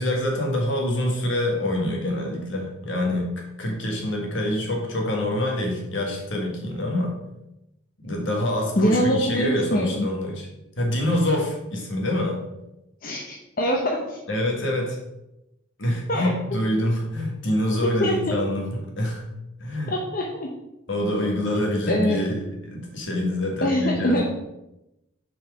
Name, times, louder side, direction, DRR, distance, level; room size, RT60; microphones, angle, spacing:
voice 1, 0.0-7.2 8.0-10.5 10.8-12.4 14.3-15.0 15.8-19.3 19.6-19.9 20.9-24.2, left 1 dB, 65° left, 0 dB, 1.7 m, -26 dB
voice 2, 8.8-10.1 13.0-13.2 13.6-14.2 16.1-16.8 18.0-18.3 19.9-20.5 21.9-22.2 23.6-24.2, equal, 45° left, -1 dB, 0.8 m, -23 dB
6.4 x 4.8 x 4.9 m, 0.90 s
head